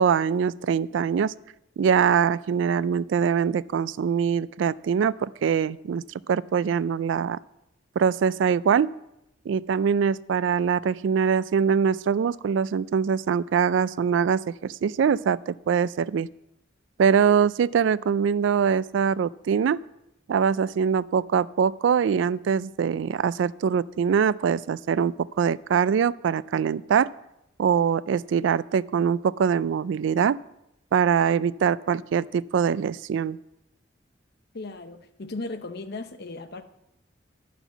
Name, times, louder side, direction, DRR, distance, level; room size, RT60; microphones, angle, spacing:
voice 1, 0.0-1.3 1.8-7.4 8.0-8.9 9.5-16.3 17.0-19.8 20.3-27.1 27.6-30.4 30.9-33.4, right 7 dB, 70° right, 20 dB, 0.3 m, -23 dB
voice 2, 34.5-36.6, left 2 dB, 60° left, 9 dB, 0.8 m, -36 dB
11.0 x 5.9 x 7.0 m, 0.86 s
head